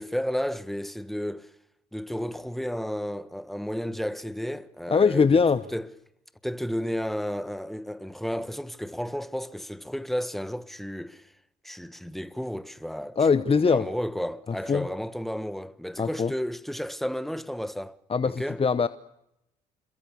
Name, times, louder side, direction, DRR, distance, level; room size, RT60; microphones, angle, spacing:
voice 1, 0.0-1.5 1.9-5.4 5.7-5.9 6.4-11.3 11.6-18.0 18.2-18.6, equal, ahead, 1.5 m, -32 dB
voice 2, 4.9-5.6 13.2-13.8 14.7-14.9 16.0-16.3 18.1-18.9, left 5 dB, 30° left, 1.0 m, -21 dB
27.5 x 22.0 x 6.8 m
hypercardioid pair, 55°, 20 cm